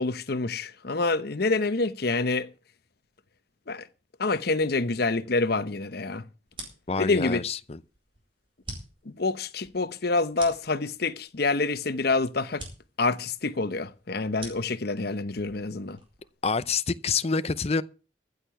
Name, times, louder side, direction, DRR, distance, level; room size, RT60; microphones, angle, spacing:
voice 1, 0.0-2.5 3.7-3.9 4.2-6.2 7.0-7.4 9.1-12.6 13.0-16.0, left 3 dB, 55° left, 0.9 m, -27 dB
sound 1, 6.5-16.3, right 2 dB, 30° right, 4.7 m, -47 dB
voice 2, 6.9-7.8 16.4-17.8, left 4 dB, 35° left, 0.6 m, -27 dB
15.0 x 6.6 x 6.9 m
head